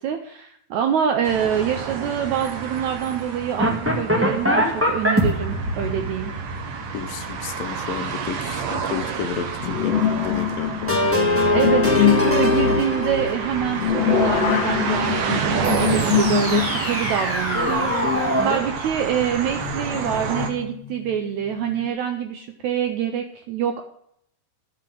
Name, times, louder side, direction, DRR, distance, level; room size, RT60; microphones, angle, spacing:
voice 1, 0.0-6.3 11.5-23.8, right 9 dB, 75° right, 5 dB, 1.7 m, -25 dB
sound 1, 1.2-20.5, right 6 dB, 60° right, 2.0 m, -30 dB
sound 2, 3.6-7.7 10.9-14.6 15.6-18.6, left 1 dB, 15° right, 0.4 m, -23 dB
voice 2, 6.9-11.0, left 9 dB, 80° left, 8 dB, 2.5 m, -32 dB
sound 3, 9.6-12.3 13.3-16.9 17.5-17.6 19.3-21.9, left 9 dB, 60° left, 1.9 m, -24 dB
11.5 x 5.9 x 7.5 m, 0.70 s
omnidirectional pair, 4.1 m